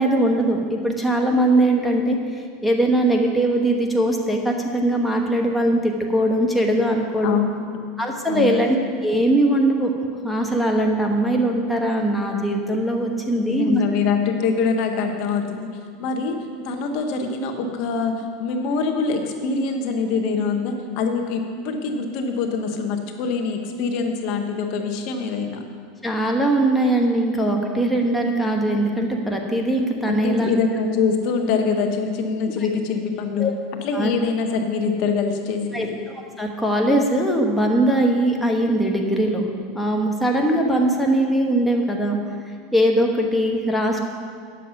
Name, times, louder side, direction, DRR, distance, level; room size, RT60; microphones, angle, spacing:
voice 1, 0.0-2.2 2.6-7.4 8.0-8.8 9.0-9.9 10.2-13.8 26.0-30.5 33.4-33.5 33.9-34.1 35.7-39.5 39.7-42.2 42.7-44.0, right 1 dB, 5° left, 0 dB, 1.1 m, -20 dB
voice 2, 7.2-7.8 8.3-8.6 13.3-15.7 16.0-25.6 30.0-33.5 33.8-35.9, left 5 dB, 60° left, 4 dB, 1.1 m, -24 dB
10.0 x 7.3 x 5.8 m, 2.1 s
supercardioid pair, 120°, 0 cm